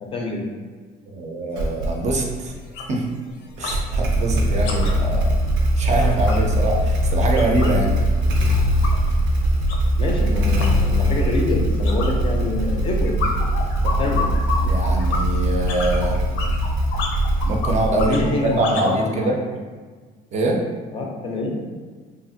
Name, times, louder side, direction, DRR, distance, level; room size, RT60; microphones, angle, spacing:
voice 1, 0.0-0.5 4.7-5.1 10.0-13.2 13.8-14.3 17.9-19.4 20.9-21.6, left 2 dB, 30° left, 0 dB, 0.4 m, -27 dB
voice 2, 1.1-2.5 2.9-3.1 3.6-5.4 5.8-7.9 14.6-16.2 17.4-19.4 20.3-20.6, right 1 dB, 40° right, 1 dB, 0.4 m, -23 dB
sound 1, 1.5-1.6 2.0-2.2 2.5-3.8 4.1-7.8 8.1-19.0, left 3 dB, 85° left, 0.5 m, -32 dB
Motorcycle / Engine starting, 1.6-2.2 3.6-18.5, equal, 90° right, 0.5 m, -21 dB
2.9 x 2.4 x 2.6 m, 1.4 s
cardioid pair, 140°, 18 cm